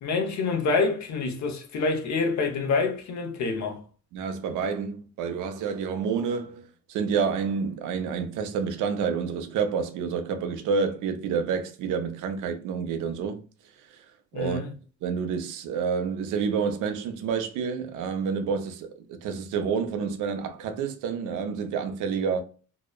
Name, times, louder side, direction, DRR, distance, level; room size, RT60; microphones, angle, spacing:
voice 1, 0.0-3.8 14.3-14.7, left 4 dB, 65° left, 0.7 m, -27 dB
voice 2, 4.1-6.6 6.9-13.4 14.3-14.6 15.0-22.4, right 6 dB, 90° right, 0.5 m, -28 dB
2.8 x 2.1 x 2.2 m
cardioid pair, 90°, 30 cm